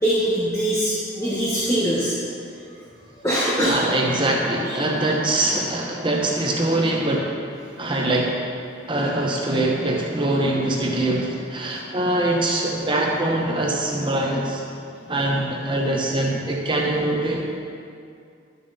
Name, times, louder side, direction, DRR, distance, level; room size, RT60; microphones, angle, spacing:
voice 1, 0.0-2.1 3.2-3.8, right 1 dB, 15° left, -6 dB, 1.1 m, -22 dB
voice 2, 3.6-7.4 7.8-8.4 8.9-14.6 15.1-17.5, right 1 dB, 30° right, -1 dB, 0.8 m, -23 dB
11.5 x 6.6 x 4.1 m, 2.4 s
head